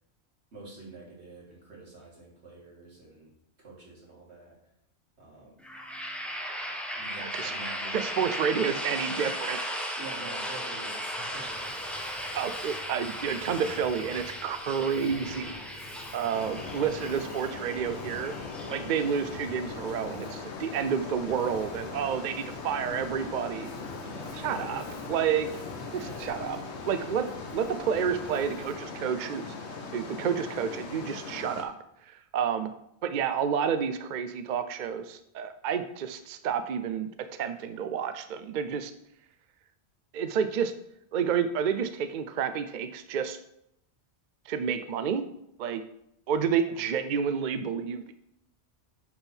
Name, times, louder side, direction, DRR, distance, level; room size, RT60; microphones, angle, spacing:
voice 1, 0.5-4.6 5.2-5.6 6.9-8.5 10.0-11.9 16.1-16.6 24.0-24.9 25.2-25.3 25.9-26.6 46.7-46.8, right 3 dB, 80° right, -4 dB, 2.5 m, -47 dB
sound 1, 5.6-19.4, equal, ahead, 0.7 m, -37 dB
voice 2, 7.2-7.5 7.9-9.6 12.3-15.6 16.1-18.3 18.7-23.7 24.4-24.8 25.1-25.5 25.9-26.6 26.9-27.3 27.5-29.4 29.9-31.7 32.0-32.7 33.0-38.9 40.1-40.7 41.1-43.4 44.5-45.2 45.6-45.8 46.3-48.1, right 7 dB, 55° right, 10 dB, 0.6 m, -30 dB
Fire, 11.0-28.9, left 3 dB, 45° left, 1.0 m, -47 dB
sound 2, 16.3-31.6, left 4 dB, 80° left, 1.3 m, -40 dB
9.5 x 3.6 x 4.4 m, 0.77 s
omnidirectional pair, 1.1 m